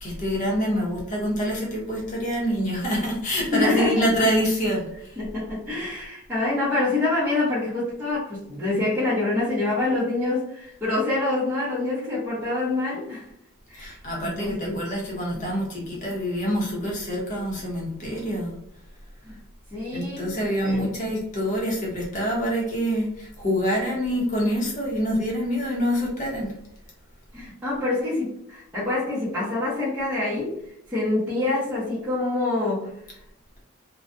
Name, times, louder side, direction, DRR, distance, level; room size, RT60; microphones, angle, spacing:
voice 1, 0.0-5.2 13.7-18.5 19.9-26.5, equal, 35° left, -3 dB, 0.8 m, -26 dB
voice 2, 3.5-4.1 5.2-13.3 13.7-14.0 14.2-14.8 19.2-19.4 19.7-20.3 20.6-20.8 27.3-30.5 30.9-32.9, left 2 dB, 10° right, -10 dB, 0.8 m, -26 dB
2.4 x 2.2 x 2.5 m, 0.75 s
head